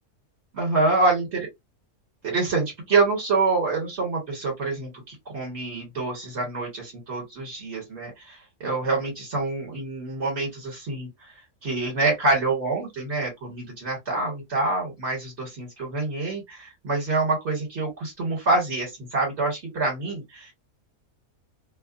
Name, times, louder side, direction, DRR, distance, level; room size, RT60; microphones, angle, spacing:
voice 1, 0.5-1.5 2.2-11.1 11.6-20.5, right 3 dB, 45° right, 1.6 m, -26 dB
2.8 x 2.3 x 2.4 m
omnidirectional pair, 1.6 m